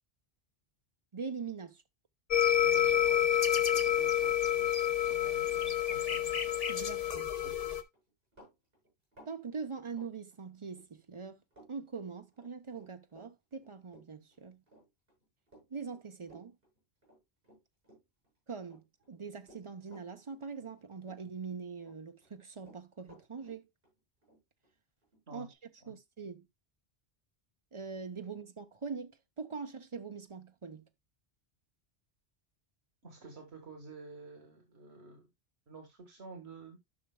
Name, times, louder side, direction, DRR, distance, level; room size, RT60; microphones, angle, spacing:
voice 1, 1.1-1.8 6.7-7.3 9.3-11.4 11.7-14.6 15.7-16.6 18.5-23.6 25.3-25.5 25.9-26.5 27.7-30.9, right 5 dB, 30° right, 0.8 m, -43 dB
sound 1, 2.3-7.8, left 10 dB, 40° left, 0.7 m, -28 dB
voice 2, 2.6-6.3 7.4-7.5 25.3-25.5 25.8-25.9 33.0-35.3 35.7-36.8, right 3 dB, 85° right, 2.0 m, -51 dB
Run, 7.5-10.9 11.1-11.7 12.0-18.3 18.6-20.8 21.0-22.0 22.2-25.6, right 1 dB, 65° right, 7.2 m, -60 dB
12.5 x 5.8 x 2.2 m
omnidirectional pair, 1.1 m